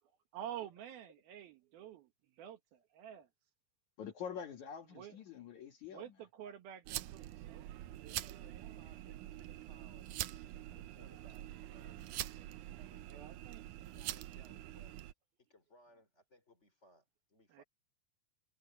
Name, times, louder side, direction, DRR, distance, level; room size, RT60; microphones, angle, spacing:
voice 1, 0.3-2.1 2.4-3.3 4.9-5.2 5.9-7.7 8.0-8.8 13.1-13.7 17.5-17.6, right 10 dB, 70° right, 3.3 m, -49 dB
voice 2, 4.0-6.1, left 7 dB, 55° left, 2.8 m, -46 dB
sound 1, 6.9-15.1, right 14 dB, 90° right, 1.7 m, -45 dB
voice 3, 8.0-12.3 12.8-13.2 13.9-15.0 15.4-17.6, left 1 dB, 15° left, 3.8 m, -66 dB
omnidirectional pair, 4.6 m